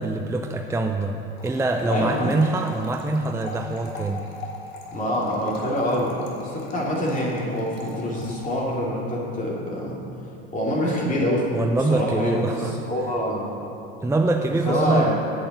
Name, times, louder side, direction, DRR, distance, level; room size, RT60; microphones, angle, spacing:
voice 1, 0.0-4.3 11.5-12.8 14.0-15.1, right 2 dB, 10° right, 3 dB, 0.6 m, -24 dB
sound 1, 1.4-8.6, left 3 dB, 80° left, 1.8 m, -40 dB
voice 2, 1.9-2.4 4.9-10.0 10.5-11.4 11.9-12.6 12.9-13.4 14.7-15.1, equal, 25° left, -4 dB, 2.8 m, -25 dB
8.5 x 8.1 x 6.6 m, 2.9 s
hypercardioid pair, 90°, 31 cm